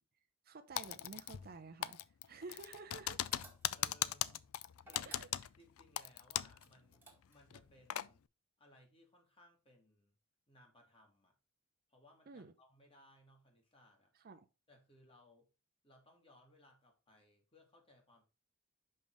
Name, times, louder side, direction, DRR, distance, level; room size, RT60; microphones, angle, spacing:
voice 1, 0.4-2.0 2.3-3.3 5.0-5.3 12.3-12.5 14.1-14.5, right 3 dB, 45° right, 0.6 m, -51 dB
Typing, 0.8-1.6 1.8-6.6 6.9-7.0 7.5-8.1, left 12 dB, 90° left, 0.4 m, -39 dB
sound 1, 3.3-4.0 4.8-5.7 6.6-7.6, right 2 dB, 10° right, 1.7 m, -59 dB
voice 2, 3.7-4.5 4.7-5.2 5.6-8.2 8.6-10.2 10.5-11.3 11.9-14.1 14.7-15.5 15.8-18.3, left 1 dB, 25° left, 2.2 m, -65 dB
5.5 x 5.4 x 4.7 m
head